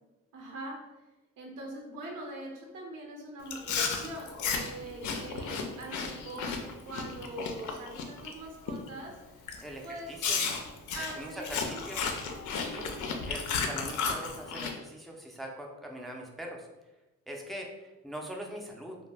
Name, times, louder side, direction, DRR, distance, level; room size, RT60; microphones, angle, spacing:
voice 1, 0.3-0.8 1.4-4.3 4.6-6.5 6.9-9.5 9.8-10.1 10.9-12.2 12.6-12.9, right 1 dB, 90° right, 0 dB, 0.6 m, -42 dB
Chewing mastication, 3.5-8.3 8.7-9.0 9.5-9.6 10.2-14.7, left 5 dB, 75° left, 0.4 m, -33 dB
voice 2, 9.6-10.4 11.2-12.0 12.5-12.9 13.3-16.7 17.3-19.0, equal, ahead, 0 dB, 0.3 m, -42 dB
2.0 x 2.0 x 3.2 m, 1.1 s
cardioid pair, 90°, 30 cm